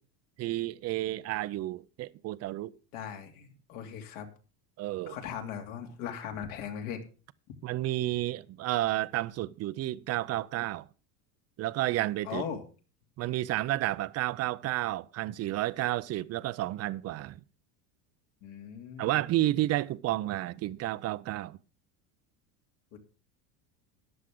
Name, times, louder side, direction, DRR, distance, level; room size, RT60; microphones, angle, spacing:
voice 1, 0.4-2.7 4.8-5.2 7.6-10.9 11.6-12.4 13.2-17.4 19.0-21.6, right 16 dB, 35° right, 0.4 m, -31 dB
voice 2, 2.9-4.3 5.0-7.0 12.2-12.6 18.4-19.2 22.9-23.0, left 8 dB, 70° left, 2.9 m, -39 dB
14.0 x 10.5 x 3.7 m
supercardioid pair, 125°, 46 cm